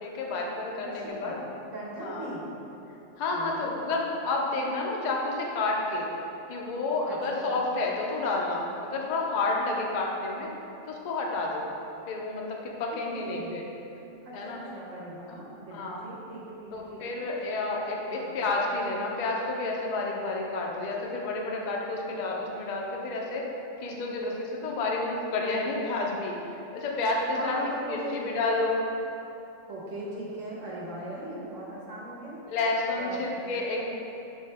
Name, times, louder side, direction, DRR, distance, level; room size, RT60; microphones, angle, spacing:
voice 1, 0.0-1.3 2.0-2.3 3.2-6.1 6.5-10.5 10.9-11.7 12.1-13.6 14.3-14.6 15.3-15.4 15.7-16.0 16.7-23.5 23.8-26.4 26.7-27.6 27.9-28.8 32.5-33.8, left 2 dB, 60° left, -1 dB, 0.4 m, -30 dB
voice 2, 0.9-1.3 1.7-2.4 3.3-3.8 7.1-7.5 12.9-13.6 14.2-17.2 18.1-18.3 27.3-28.2 29.7-32.4 32.9-33.3 33.6-33.8, right 1 dB, 75° right, -5 dB, 1.2 m, -39 dB
5.4 x 2.8 x 3.3 m, 2.9 s
omnidirectional pair, 1.3 m